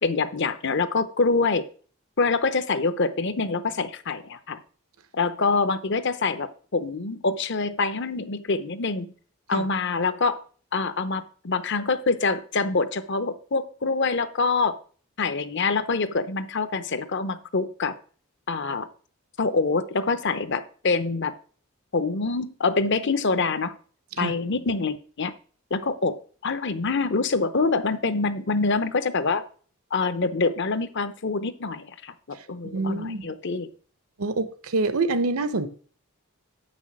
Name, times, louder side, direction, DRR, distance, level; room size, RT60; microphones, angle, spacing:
voice 1, 0.0-1.6 2.2-4.6 5.1-9.1 9.5-10.4 10.7-14.8 15.2-17.9 18.5-18.9 19.4-21.3 21.9-23.8 24.2-25.3 25.7-26.1 26.4-29.4 29.9-33.7, left 4 dB, 55° left, 0.8 m, -25 dB
voice 2, 32.7-33.3 34.2-35.7, right 3 dB, 80° right, 0.9 m, -26 dB
8.5 x 6.2 x 6.1 m
head